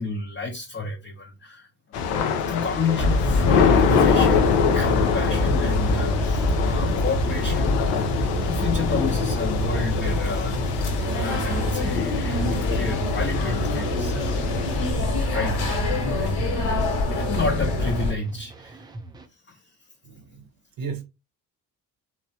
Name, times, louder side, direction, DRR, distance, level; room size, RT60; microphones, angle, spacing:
voice 1, 0.0-14.6 14.9-18.9 19.3-19.8, left 3 dB, 25° left, 0.7 m, -31 dB
Thunder / Rain, 1.9-14.9, left 6 dB, 70° left, 0.6 m, -25 dB
enviroment hospital, 3.0-18.1, left 1 dB, 55° left, 1.1 m, -25 dB
sound 1, 14.2-19.3, right 2 dB, 10° right, 0.3 m, -42 dB
voice 2, 20.0-20.5 20.8-21.0, right 5 dB, 45° right, 0.8 m, -35 dB
3.1 x 2.1 x 2.7 m
hypercardioid pair, 50°, 49 cm